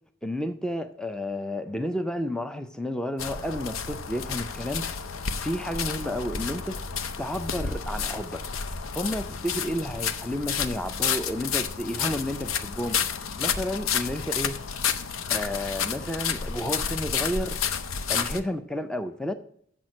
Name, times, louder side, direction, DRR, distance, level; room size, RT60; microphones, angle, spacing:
voice 1, 0.2-4.9 5.4-6.7 7.2-8.4 8.9-13.0 13.4-14.6 15.3-17.6 18.1-19.3, left 1 dB, 5° left, 0.4 m, -31 dB
sound 1, 3.2-18.4, left 7 dB, 85° left, 0.6 m, -30 dB
7.2 x 6.1 x 6.2 m
head